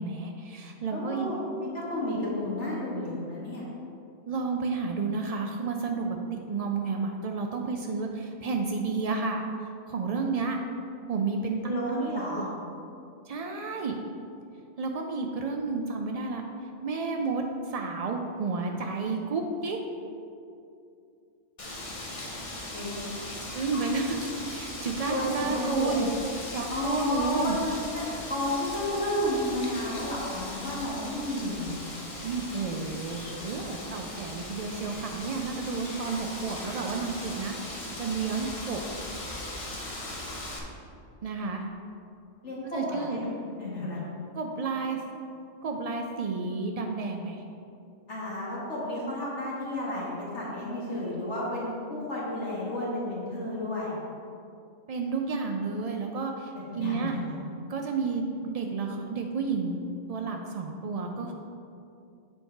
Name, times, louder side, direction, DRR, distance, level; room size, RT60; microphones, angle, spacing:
voice 1, 0.0-1.3 4.3-9.4 9.9-10.6 11.1-12.4 13.3-13.9 14.8-16.4 16.8-19.8 23.5-26.1 26.5-27.6 32.2-38.8 41.2-41.6 42.7-43.2 44.3-45.0 45.6-47.4 54.9-57.1 57.7-59.8 60.1-61.3, right 4 dB, 80° right, 2 dB, 0.3 m, -31 dB
voice 2, 0.9-3.7 11.6-12.5 22.7-23.0 25.1-26.0 26.7-31.7 42.4-43.3 43.6-44.0 48.1-54.0 56.8-57.3, left 1 dB, 65° left, -6 dB, 2.1 m, -32 dB
Wind, 21.6-40.6, left 1 dB, 30° left, 0.8 m, -39 dB
7.9 x 4.7 x 4.5 m, 2.5 s
omnidirectional pair, 1.3 m